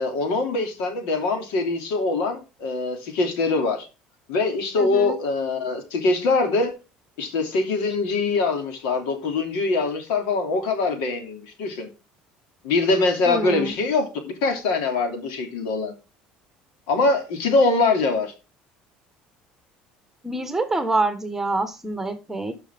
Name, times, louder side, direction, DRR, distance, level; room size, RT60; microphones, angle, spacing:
voice 1, 0.0-3.9 4.3-6.7 7.2-11.9 12.6-14.1 14.4-15.9 16.9-18.3, left 3 dB, 85° left, 2.9 m, -23 dB
voice 2, 4.8-5.1 13.2-13.7 20.2-22.5, right 2 dB, 10° right, 1.6 m, -26 dB
13.5 x 6.0 x 3.7 m
cardioid pair, 115°, 3 cm